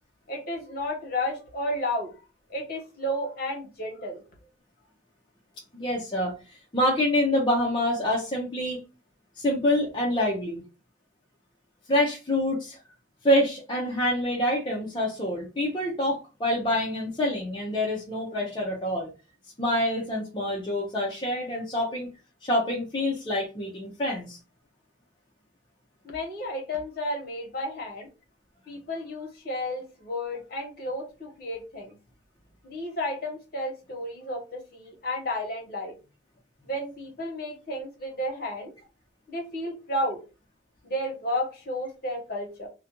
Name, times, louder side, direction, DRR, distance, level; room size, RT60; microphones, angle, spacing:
voice 1, 0.3-2.1 2.5-4.2 26.0-28.1 28.7-31.9 32.6-35.9 36.6-38.7 39.3-40.2 40.8-42.7, left 1 dB, 50° left, 0 dB, 1.0 m, -32 dB
voice 2, 5.7-6.3 6.7-8.8 9.4-10.6 11.9-12.8 13.2-19.1 19.6-22.1 22.4-24.4, left 1 dB, 25° left, -3 dB, 0.5 m, -26 dB
2.4 x 2.1 x 2.9 m, 0.31 s
head